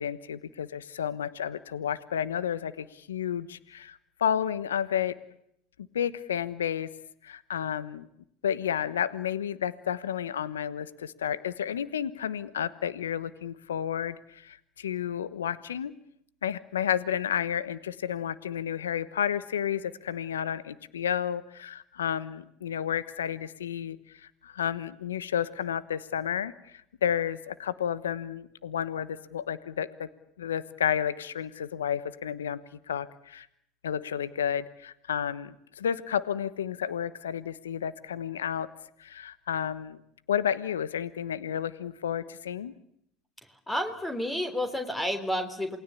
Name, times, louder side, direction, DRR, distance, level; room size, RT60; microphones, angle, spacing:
voice 1, 0.0-5.1 5.9-6.9 7.2-8.1 8.4-15.9 16.4-30.1 30.4-32.6 32.9-33.5 33.8-38.7 39.0-40.0 40.3-42.7, left 9 dB, 90° left, 16 dB, 1.1 m, -31 dB
voice 2, 43.4-45.8, left 1 dB, 10° left, 8 dB, 3.4 m, -31 dB
28.0 x 20.5 x 8.4 m, 0.75 s
hypercardioid pair, 85°, 0 cm